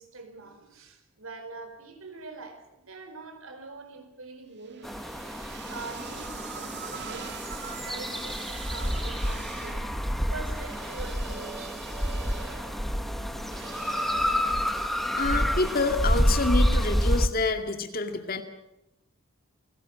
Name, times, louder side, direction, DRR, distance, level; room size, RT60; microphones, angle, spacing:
voice 1, 0.0-5.0 5.7-9.9 10.3-11.9, right 3 dB, 75° right, 4.8 m, -44 dB
sound 1, 4.6-15.9, right 6 dB, 50° right, 2.9 m, -44 dB
sound 2, 4.8-17.3, equal, ahead, 1.4 m, -28 dB
voice 2, 15.1-18.4, left 3 dB, 40° left, 2.3 m, -27 dB
29.0 x 18.5 x 7.7 m
head